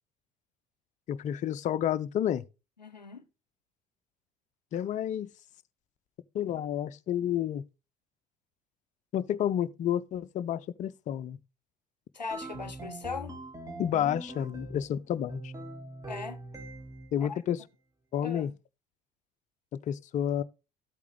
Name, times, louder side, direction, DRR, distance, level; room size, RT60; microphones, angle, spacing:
voice 1, 1.1-2.4 4.7-5.3 6.3-7.6 9.1-11.4 13.8-15.5 17.1-17.6 18.1-18.5 19.7-20.4, left 10 dB, 35° left, 0.5 m, -30 dB
voice 2, 2.8-3.2 12.1-13.4 16.1-16.4 17.2-17.4 18.2-18.5, left 4 dB, 90° left, 0.6 m, -39 dB
sound 1, 12.3-14.9 15.3-17.2, right 2 dB, 15° right, 2.0 m, -42 dB
13.0 x 8.3 x 3.3 m
figure-of-eight pair, 55°, 21 cm